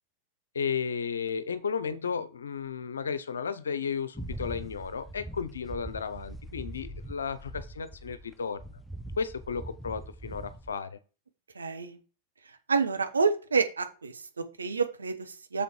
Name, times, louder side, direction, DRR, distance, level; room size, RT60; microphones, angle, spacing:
voice 1, 0.5-8.6 9.2-11.0, left 6 dB, 70° left, 14 dB, 0.8 m, -33 dB
sound 1, 4.1-8.3 8.6-10.7, right 1 dB, 5° left, 0.7 m, -42 dB
voice 2, 11.5-12.0 12.7-15.6, right 5 dB, 75° right, 7 dB, 1.1 m, -28 dB
6.9 x 5.2 x 4.6 m, 0.33 s
figure-of-eight pair, 90°, 0 cm